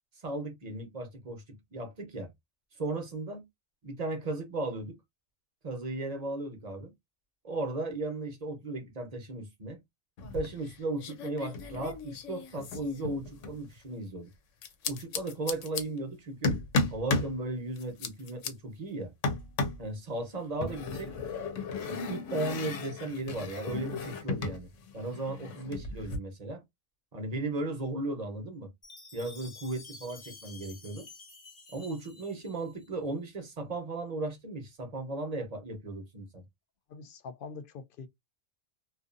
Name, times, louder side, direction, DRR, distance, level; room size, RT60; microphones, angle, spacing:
voice 1, 0.2-2.3 2.8-3.4 3.8-5.0 5.6-6.9 7.4-9.8 10.3-14.3 14.8-16.6 16.9-19.1 19.8-21.1 21.8-26.6 27.1-28.7 29.1-31.1 31.7-36.4, right 2 dB, 35° right, 0.9 m, -36 dB
sound 1, 10.2-10.7 11.0-13.6 14.6-15.8 16.4-17.3 17.8-18.5 19.2-19.9 20.6-24.6 24.9-26.2, left 3 dB, 85° left, 1.0 m, -34 dB
Chime, 28.8-33.0, left 3 dB, 40° left, 1.0 m, -51 dB
voice 2, 36.9-38.1, left 5 dB, 60° left, 0.6 m, -44 dB
2.5 x 2.5 x 2.5 m
omnidirectional pair, 1.2 m